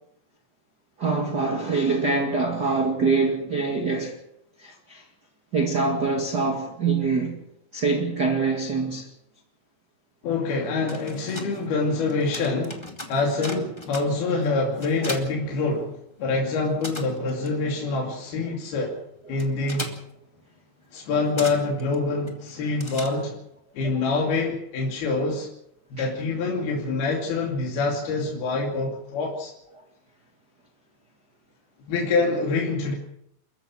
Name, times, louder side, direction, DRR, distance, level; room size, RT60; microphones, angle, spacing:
voice 1, 1.0-4.2 4.6-5.0 5.5-7.4 7.7-9.1 26.0-26.1, right 4 dB, 35° right, 2.0 m, -24 dB
voice 2, 10.2-19.0 19.3-19.9 20.9-23.4 23.7-25.5 25.9-29.5 31.8-32.9, left 3 dB, 70° left, 4.5 m, -26 dB
sound 1, 10.6-16.2 16.5-23.6, left 2 dB, 15° left, 0.9 m, -40 dB
29.5 x 14.5 x 6.4 m
omnidirectional pair, 4.7 m